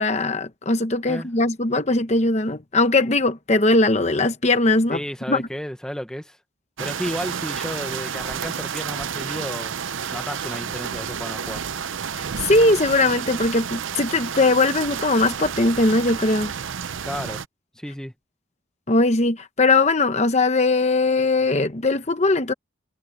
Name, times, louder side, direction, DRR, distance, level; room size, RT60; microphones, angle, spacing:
voice 1, 0.0-5.0 5.3-5.4 12.2-16.5 18.9-22.5, left 2 dB, 35° left, 0.9 m, -20 dB
voice 2, 4.9-6.4 6.8-9.7 10.1-11.6 17.0-17.4 17.7-18.1, equal, 5° left, 1.2 m, -32 dB
sound 1, 6.8-17.5, right 7 dB, 85° right, 0.7 m, -30 dB
head